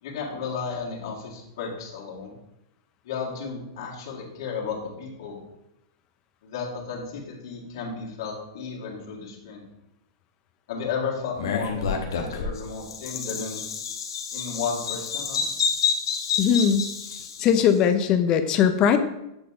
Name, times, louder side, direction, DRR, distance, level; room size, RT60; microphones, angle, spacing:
voice 1, 0.0-2.3 3.0-5.4 6.4-9.6 10.7-13.6 14.3-15.4, left 5 dB, 65° left, -3 dB, 2.0 m, -33 dB
Bird vocalization bird call bird song, 11.4-17.6, left 6 dB, 90° left, 1.0 m, -29 dB
voice 2, 16.4-16.9 17.2-19.0, left 8 dB, 30° left, 9 dB, 0.5 m, -20 dB
8.0 x 4.1 x 3.7 m, 0.87 s
supercardioid pair, 155°, 2 cm